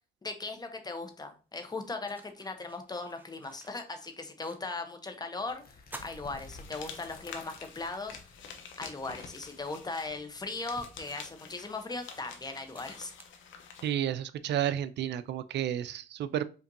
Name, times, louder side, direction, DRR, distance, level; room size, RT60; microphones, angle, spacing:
voice 1, 0.2-8.2 8.8-13.1, left 3 dB, 20° left, 7 dB, 0.8 m, -38 dB
sound 1, 1.7-5.0 5.3-5.4 5.8-7.3 7.8-7.9 9.3-9.4 9.9-14.1, right 2 dB, 10° right, 0.6 m, -53 dB
sound 2, 5.4-11.2, left 3 dB, 50° left, 0.8 m, -53 dB
sound 3, 6.4-13.9, left 6 dB, 80° left, 0.8 m, -48 dB
voice 2, 13.8-16.4, right 10 dB, 60° right, 13 dB, 0.4 m, -31 dB
5.2 x 2.6 x 2.7 m, 0.35 s
cardioid pair, 90°, 20 cm